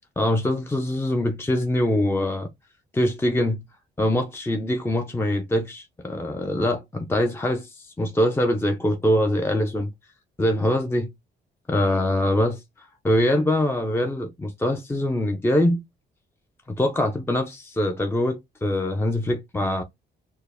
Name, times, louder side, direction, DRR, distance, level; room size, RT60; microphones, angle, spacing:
voice 1, 0.2-2.5 2.9-3.6 4.0-9.9 10.4-11.1 11.7-15.8 16.7-19.8, left 1 dB, 10° left, 0.5 m, -23 dB
4.4 x 2.1 x 3.4 m
cardioid pair, 90°, 20 cm